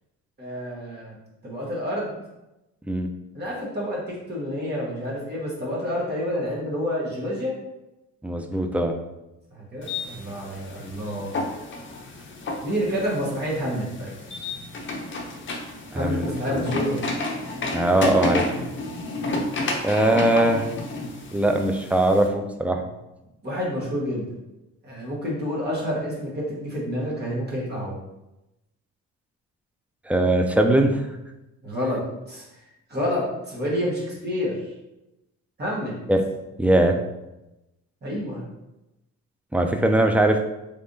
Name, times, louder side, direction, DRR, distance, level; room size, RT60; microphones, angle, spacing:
voice 1, 0.4-1.1 1.4-2.1 3.3-7.5 9.5-11.3 12.6-14.1 15.9-17.0 23.4-24.3 24.8-27.9 31.6-32.0 32.3-32.4 32.9-34.5 35.6-35.9 38.0-38.4, equal, 35° right, -5 dB, 1.4 m, -28 dB
voice 2, 8.2-8.9 15.9-16.6 17.7-18.5 19.8-20.6 21.3-22.8 30.1-31.0 36.1-36.2 36.6-37.0 39.5-40.4, right 1 dB, 5° right, 5 dB, 0.3 m, -21 dB
sound 1, 9.8-22.3, left 2 dB, 40° left, 0.6 m, -31 dB
3.4 x 3.3 x 2.6 m, 0.96 s
cardioid pair, 90°, 30 cm